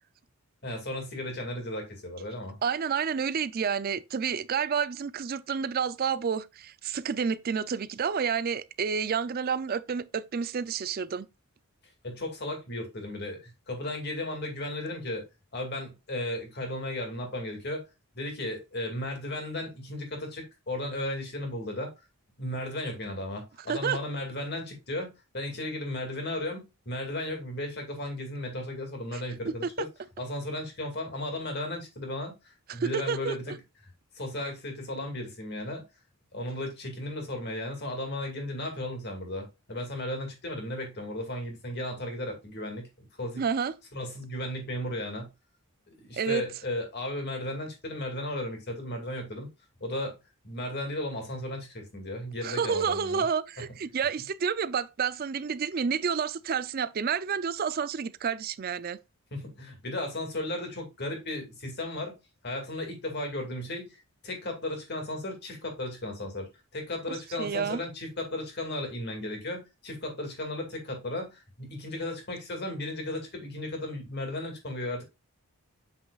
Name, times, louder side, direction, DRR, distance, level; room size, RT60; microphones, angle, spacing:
voice 1, 0.6-2.5 12.0-15.3 15.5-17.9 18.1-21.9 22.4-29.9 30.2-33.5 34.1-35.8 36.3-43.4 43.9-45.3 46.0-49.5 49.8-50.2 50.4-53.3 59.3-62.1 62.4-75.0, left 1 dB, 50° left, 2.2 m, -35 dB
voice 2, 2.6-11.3 23.7-24.0 29.1-29.9 32.7-33.4 43.4-43.7 46.2-46.4 52.4-59.0 67.1-67.8, right 6 dB, 40° right, 0.4 m, -30 dB
7.5 x 5.6 x 2.3 m
head